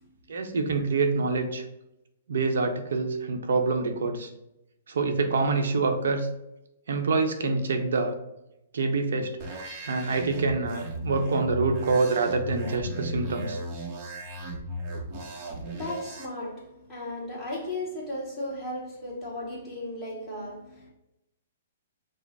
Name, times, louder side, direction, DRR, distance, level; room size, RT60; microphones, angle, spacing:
voice 1, 0.3-1.6 2.3-4.3 4.9-6.3 6.9-8.2 8.7-9.4 9.8-13.6, right 3 dB, 80° right, 0.8 m, -26 dB
sound 1, 9.4-16.3, right 1 dB, 25° right, 0.8 m, -36 dB
voice 2, 15.1-20.9, left 1 dB, 5° left, 1.6 m, -36 dB
5.2 x 2.0 x 4.1 m
hypercardioid pair, 155°, 0 cm